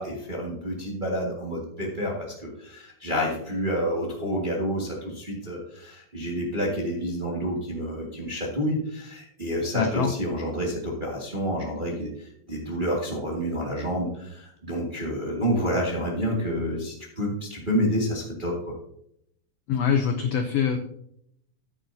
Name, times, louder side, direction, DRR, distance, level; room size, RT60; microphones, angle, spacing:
voice 1, 0.0-2.1 2.4-18.7, equal, 25° right, -3 dB, 1.1 m, -29 dB
voice 2, 9.7-10.1 19.7-20.8, left 7 dB, 80° left, 5 dB, 1.4 m, -24 dB
14.0 x 8.7 x 2.7 m, 0.74 s
omnidirectional pair, 3.8 m